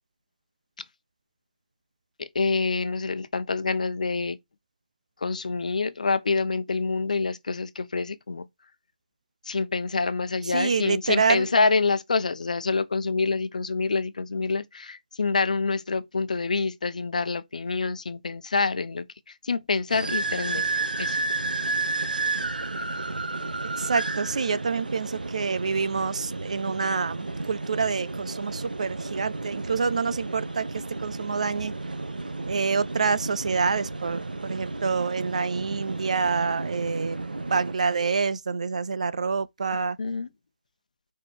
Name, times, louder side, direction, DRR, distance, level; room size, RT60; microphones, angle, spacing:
voice 1, 2.2-4.4 5.2-8.5 9.4-20.7 21.0-21.2 40.0-40.3, left 4 dB, 60° left, 0.9 m, -27 dB
voice 2, 10.5-11.5 23.8-31.7 32.5-40.0, right 5 dB, 50° right, 0.6 m, -27 dB
sound 1, 19.9-37.7, right 3 dB, 75° right, 1.2 m, -32 dB
5.1 x 5.0 x 4.6 m
figure-of-eight pair, 155°, 5 cm